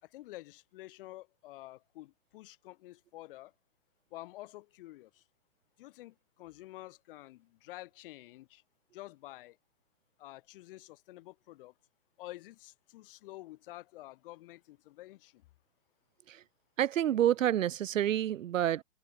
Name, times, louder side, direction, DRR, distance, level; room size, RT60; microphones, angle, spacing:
voice 1, 0.0-3.5 4.1-5.2 5.8-8.6 8.9-9.6 10.2-11.7 12.2-15.4, left 17 dB, 45° left, 6.9 m, -49 dB
voice 2, 16.8-18.8, right 11 dB, 80° right, 0.7 m, -28 dB
hypercardioid pair, 140°, 39 cm